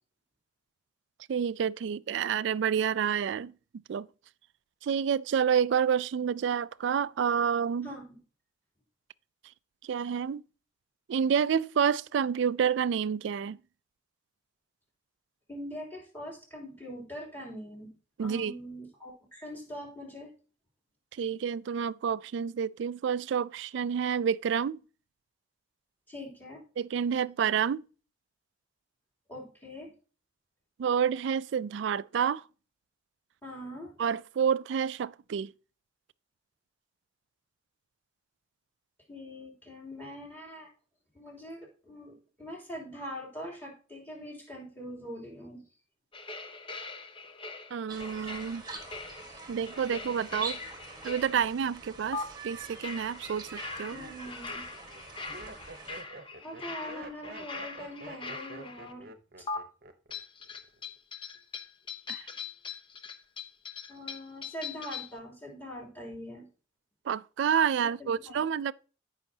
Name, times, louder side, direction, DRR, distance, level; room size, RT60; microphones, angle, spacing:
voice 1, 1.3-3.5 3.9-4.1 4.8-7.9 9.8-10.4 11.1-13.6 18.2-18.5 21.2-24.8 26.8-27.9 30.8-32.4 34.0-35.5 47.7-48.6 49.5-50.6 51.0-54.0 62.1-62.3 67.1-68.7, right 7 dB, 65° right, 0.3 m, -29 dB
voice 2, 7.8-8.2 15.5-17.9 18.2-20.3 26.1-26.6 29.3-29.9 33.4-33.9 39.1-40.7 41.1-45.6 49.3-49.4 53.9-54.7 56.4-59.1 59.4-59.5 63.9-66.5 67.8-68.4, equal, 10° left, 3.1 m, -43 dB
sound 1, 46.1-51.7 52.1-52.2 52.8-58.9 59.5-59.6 60.1-65.2, left 4 dB, 25° left, 0.7 m, -42 dB
sound 2, 47.9-56.0, right 3 dB, 20° right, 1.3 m, -45 dB
Laughter, 52.5-52.9 53.6-60.2 60.4-61.0, right 3 dB, 50° right, 0.9 m, -48 dB
14.0 x 5.7 x 2.8 m
head